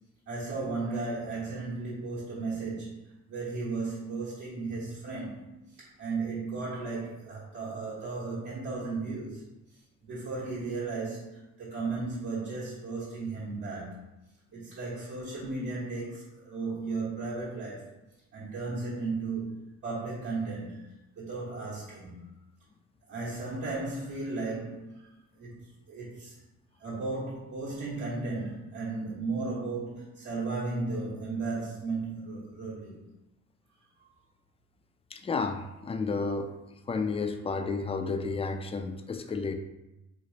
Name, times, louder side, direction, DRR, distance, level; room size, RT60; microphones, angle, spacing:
voice 1, 0.3-3.0 3.3-9.5 10.0-14.0 14.5-17.9 18.3-20.9 21.2-22.2 23.1-25.1 25.4-25.6 25.9-26.4 26.8-33.0 34.0-34.1, right 3 dB, 70° right, -10 dB, 1.3 m, -35 dB
voice 2, 35.1-36.5 36.9-39.5, left 4 dB, 20° left, 6 dB, 0.3 m, -31 dB
3.1 x 2.4 x 3.9 m, 0.94 s
cardioid pair, 90°, 30 cm